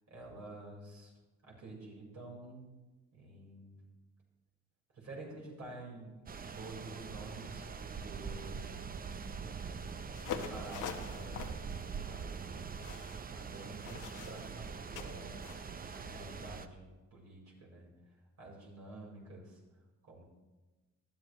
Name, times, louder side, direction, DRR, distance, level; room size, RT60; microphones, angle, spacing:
voice 1, 0.1-1.1 1.4-2.7 3.1-3.8 5.0-8.8 10.2-11.5 12.0-12.7 13.3-15.4 15.9-16.9 17.1-17.9 18.4-19.6 20.0-20.2, right 2 dB, 60° right, -3 dB, 4.7 m, -49 dB
sound 1, 6.3-16.7, right 5 dB, 30° right, 0.7 m, -43 dB
sound 2, 10.1-15.6, left 8 dB, 80° left, 1.2 m, -45 dB
19.5 x 12.0 x 3.1 m, 1.2 s
cardioid pair, 90°, 30 cm